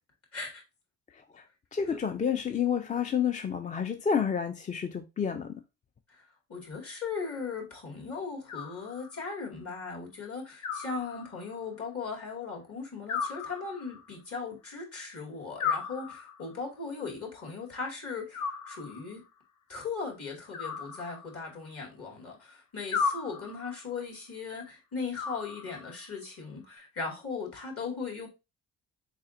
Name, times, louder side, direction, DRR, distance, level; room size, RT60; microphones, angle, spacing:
voice 1, 0.3-0.6 1.9-2.0 6.1-19.2 19.7-28.3, left 4 dB, 50° left, 2.2 m, -38 dB
voice 2, 1.7-5.5, left 7 dB, 25° left, 0.4 m, -29 dB
Animal, 8.5-9.4 10.6-11.6 13.1-14.2 15.6-16.6 18.3-19.2 20.5-21.6 22.9-23.8 25.1-26.1, left 6 dB, 70° left, 0.7 m, -35 dB
4.2 x 4.1 x 2.5 m
cardioid pair, 90°, 30 cm